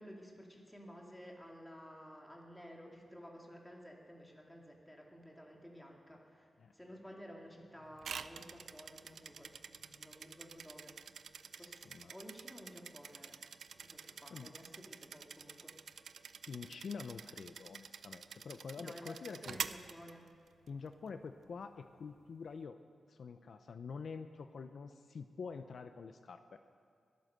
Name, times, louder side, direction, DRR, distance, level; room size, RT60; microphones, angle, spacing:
voice 1, 0.0-13.4 13.7-16.1 18.8-20.3, equal, 5° left, 0 dB, 2.1 m, -54 dB
sound 1, 8.0-20.7, right 6 dB, 75° right, 0.4 m, -48 dB
voice 2, 11.5-12.1 14.3-14.5 16.5-19.6 20.7-22.8 23.1-26.6, left 5 dB, 60° left, 9 dB, 0.6 m, -47 dB
21.0 x 9.4 x 6.6 m, 2.2 s
wide cardioid pair, 125°, 0 cm